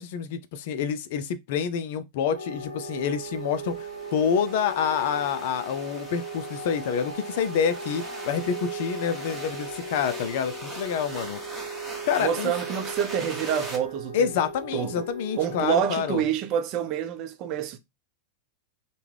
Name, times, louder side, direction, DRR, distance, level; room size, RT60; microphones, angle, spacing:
voice 1, 0.0-11.4 12.0-12.5 14.1-16.2, left 7 dB, 50° left, 0.4 m, -27 dB
sound 1, 2.3-15.8, right 2 dB, 90° right, 0.9 m, -37 dB
sound 2, 3.3-13.8, right 1 dB, 5° right, 1.2 m, -41 dB
voice 2, 12.2-14.3 14.7-15.1 15.4-17.8, right 9 dB, 40° right, 0.5 m, -27 dB
3.4 x 2.2 x 3.1 m
figure-of-eight pair, 90°, 0 cm